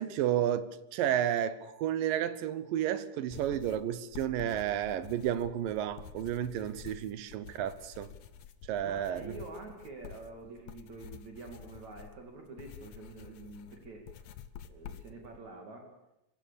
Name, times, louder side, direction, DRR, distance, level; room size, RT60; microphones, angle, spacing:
voice 1, 0.0-8.1 8.7-9.3, right 10 dB, 75° right, 2.7 m, -32 dB
sound 1, 3.3-15.4, left 8 dB, 65° left, 1.9 m, -50 dB
voice 2, 8.8-14.3 14.7-15.9, right 3 dB, 55° right, 3.8 m, -47 dB
26.5 x 16.0 x 7.1 m
omnidirectional pair, 4.1 m